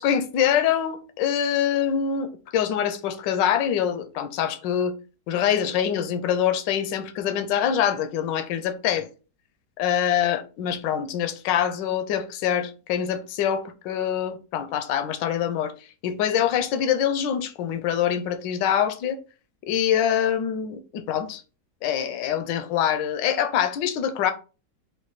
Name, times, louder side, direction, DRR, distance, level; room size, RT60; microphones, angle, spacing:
voice 1, 0.0-4.9 5.3-9.1 9.8-15.7 16.0-19.2 19.7-21.4 21.8-24.3, left 9 dB, 85° left, 1.3 m, -24 dB
4.7 x 2.3 x 4.0 m
omnidirectional pair, 1.9 m